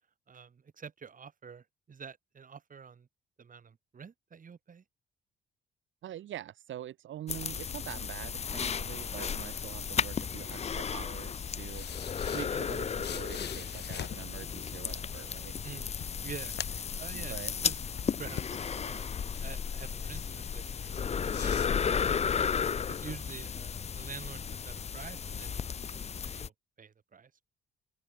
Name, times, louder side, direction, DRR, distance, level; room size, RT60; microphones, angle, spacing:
voice 1, 0.3-3.1 3.4-4.8 15.6-17.3 17.6-17.8 18.2-19.1 19.4-21.7 22.8-26.5 26.8-27.4, right 6 dB, 40° right, 5.1 m, -47 dB
voice 2, 6.0-15.6 17.1-17.5, right 12 dB, 75° right, 4.5 m, -44 dB
sound 1, 7.3-26.5, left 6 dB, 35° left, 0.6 m, -34 dB
sound 2, 11.7-14.3 15.4-15.5 15.8-17.0 17.3-19.4 19.9-20.5 20.8-22.4, left 10 dB, 60° left, 1.3 m, -44 dB
open air
cardioid pair, 90°, 20 cm